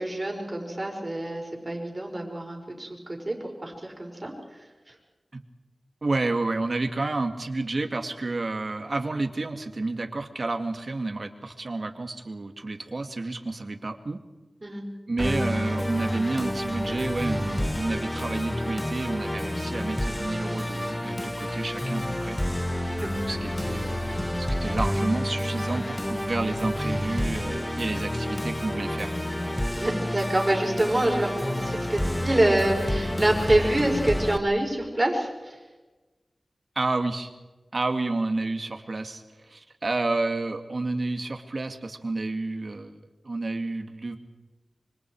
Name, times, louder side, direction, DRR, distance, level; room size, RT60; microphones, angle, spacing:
voice 1, 0.0-4.3 14.6-14.8 23.0-23.1 29.7-35.6, right 1 dB, 30° right, 1 dB, 5.2 m, -26 dB
voice 2, 6.0-14.2 15.1-22.4 22.7-24.1 24.4-29.2 36.8-37.3 37.7-43.0 43.2-44.2, right 2 dB, 55° right, 5 dB, 2.1 m, -30 dB
Musical instrument, 15.2-34.4, left 1 dB, 15° left, 1.5 m, -29 dB
26.0 x 25.0 x 4.8 m, 1.2 s
wide cardioid pair, 70°, 0 cm